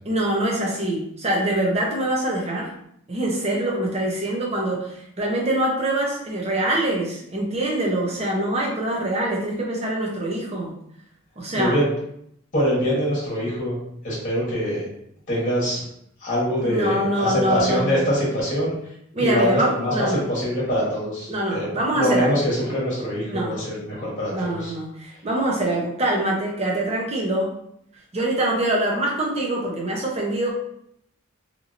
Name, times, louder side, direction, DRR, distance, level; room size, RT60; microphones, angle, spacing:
voice 1, 0.0-2.7 3.1-10.7 11.4-11.8 16.6-18.0 19.1-20.2 21.3-22.3 23.3-23.6 24.3-27.5 28.1-30.5, right 1 dB, 25° right, -2 dB, 0.6 m, -24 dB
voice 2, 12.5-13.8 14.0-14.8 15.3-15.8 16.2-18.7 19.2-21.7 21.9-24.7, equal, 35° left, -6 dB, 1.1 m, -23 dB
2.8 x 2.7 x 2.5 m, 0.72 s
head